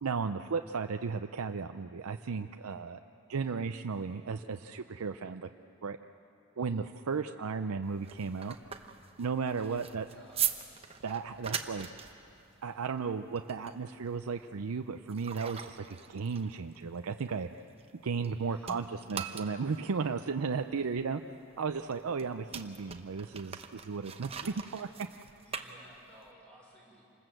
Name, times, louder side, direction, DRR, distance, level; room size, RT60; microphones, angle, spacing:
voice 1, 0.0-3.0 3.3-5.5 5.8-6.0 6.6-8.6 9.2-10.0 11.0-11.9 12.6-17.5 18.0-21.2 21.6-24.4 24.7-24.9, right 5 dB, 90° right, 7 dB, 0.5 m, -35 dB
sound 1, 7.8-18.3 18.6-26.3, right 8 dB, 25° right, 0.8 m, -41 dB
voice 2, 9.6-10.6 18.3-18.8 20.8-20.9 24.4-24.9 25.5-27.0, equal, 5° left, -4 dB, 5.5 m, -58 dB
27.0 x 20.0 x 7.8 m, 2.8 s
head